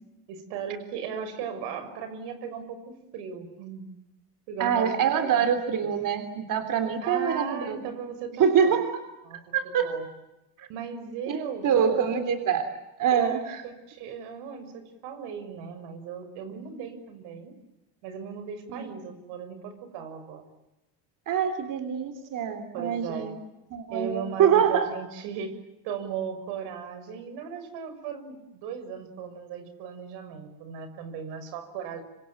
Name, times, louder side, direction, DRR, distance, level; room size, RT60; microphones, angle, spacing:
voice 1, 0.3-2.8 3.1-3.9 4.5-5.5 5.7-5.9 7.0-8.8 9.2-10.1 10.7-12.1 13.1-17.5 18.0-20.4 22.7-23.3 23.9-25.6 25.8-32.0, right 7 dB, 85° right, 9 dB, 6.6 m, -37 dB
voice 2, 4.6-7.8 8.4-8.9 9.5-9.9 10.6-10.7 11.3-12.7 13.0-13.6 18.7-18.8 21.3-23.3 23.7-24.9, right 7 dB, 50° right, 9 dB, 3.4 m, -25 dB
26.5 x 25.0 x 8.9 m, 0.97 s
cardioid pair, 125°, 41 cm